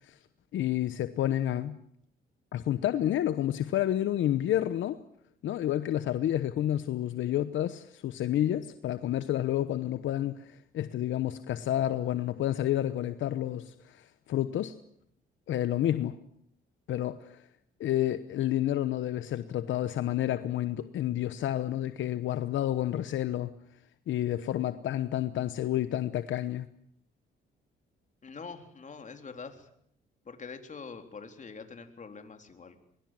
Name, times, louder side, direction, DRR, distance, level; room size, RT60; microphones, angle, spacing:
voice 1, 0.5-1.8 2.5-5.0 5.4-14.7 15.5-16.2 16.9-17.4 17.8-23.5 24.1-26.7, left 12 dB, 75° left, 12 dB, 1.1 m, -30 dB
voice 2, 28.2-29.7 30.3-32.8, left 5 dB, 40° left, 6 dB, 3.9 m, -44 dB
23.0 x 23.0 x 7.7 m, 0.69 s
cardioid pair, 90°, 20 cm